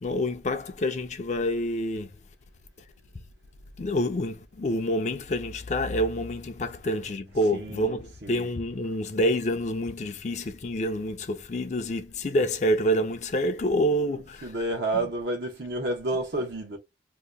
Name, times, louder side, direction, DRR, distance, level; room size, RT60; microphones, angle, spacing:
voice 1, 0.0-2.1 3.8-14.5, equal, 40° left, 0.4 m, -27 dB
voice 2, 7.5-8.5 13.9-16.8, right 2 dB, 70° right, 0.8 m, -31 dB
2.8 x 2.2 x 3.3 m
head